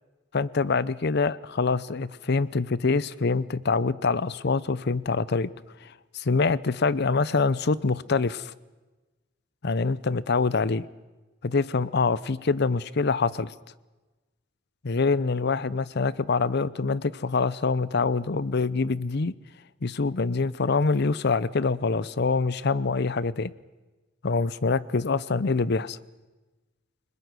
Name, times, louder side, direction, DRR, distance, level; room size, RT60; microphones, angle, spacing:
voice 1, 0.3-5.5 5.8-8.5 9.6-10.8 11.4-13.5 14.8-19.3 19.8-23.5 24.2-26.0, left 4 dB, 55° left, 18 dB, 0.7 m, -25 dB
29.5 x 20.5 x 6.2 m, 1.2 s
head